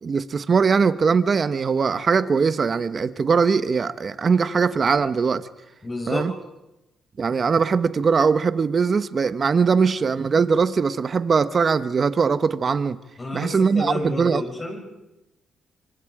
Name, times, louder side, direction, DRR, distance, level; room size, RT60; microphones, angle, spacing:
voice 1, 0.0-5.5 6.1-6.3 7.2-13.0 13.3-14.4, right 5 dB, 40° right, 13 dB, 1.1 m, -21 dB
voice 2, 5.8-6.3 13.2-14.8, left 2 dB, 25° left, 1 dB, 7.6 m, -30 dB
26.0 x 24.5 x 5.0 m, 0.97 s
cardioid pair, 90°, 0 cm